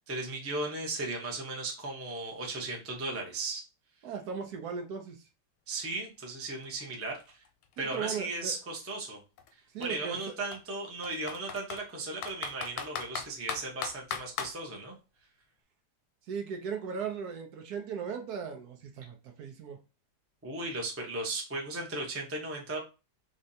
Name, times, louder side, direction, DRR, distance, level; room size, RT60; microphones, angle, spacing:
voice 1, 0.0-3.6 5.7-7.2 7.8-9.2 9.8-14.9 20.4-22.8, right 2 dB, 15° right, -1 dB, 0.4 m, -36 dB
voice 2, 4.0-5.2 7.8-8.5 9.7-10.2 16.3-19.8, right 6 dB, 70° right, 5 dB, 1.1 m, -37 dB
Computer keyboard, 6.3-6.4 6.6-8.6 9.4-9.5 9.8-9.9 10.5-11.8 12.2-14.5, left 8 dB, 70° left, 1.0 m, -38 dB
3.8 x 3.2 x 2.7 m, 0.31 s
omnidirectional pair, 1.8 m